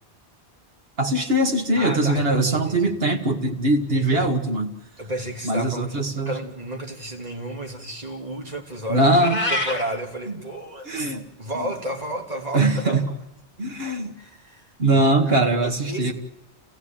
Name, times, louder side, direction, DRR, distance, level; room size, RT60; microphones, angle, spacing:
voice 1, 1.0-4.7 5.4-6.4 8.9-9.4 10.9-11.2 12.5-13.1 13.6-14.1 14.8-16.1, right 2 dB, 60° right, 2.4 m, -21 dB
voice 2, 1.7-2.9 3.9-4.3 5.0-9.1 9.5-13.3 14.2-16.1, right 1 dB, 35° right, 3.3 m, -33 dB
Meow, 9.1-9.9, left 2 dB, 40° left, 2.4 m, -25 dB
29.5 x 16.0 x 9.1 m
omnidirectional pair, 1.1 m